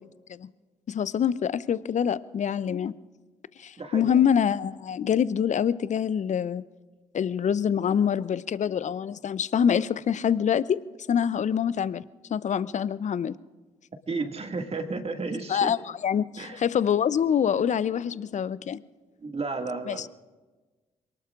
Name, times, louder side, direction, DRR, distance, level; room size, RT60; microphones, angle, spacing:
voice 1, 0.9-3.0 3.6-6.6 7.1-10.8 11.1-12.0 12.3-13.3 15.5-15.8 16.0-18.8 19.9-20.1, left 8 dB, 45° left, 18 dB, 0.7 m, -25 dB
voice 2, 3.8-4.2 14.1-15.7 16.4-16.6 19.2-20.1, right 3 dB, 35° right, 4 dB, 2.1 m, -32 dB
27.5 x 19.0 x 2.5 m, 1.3 s
figure-of-eight pair, 40°, 18 cm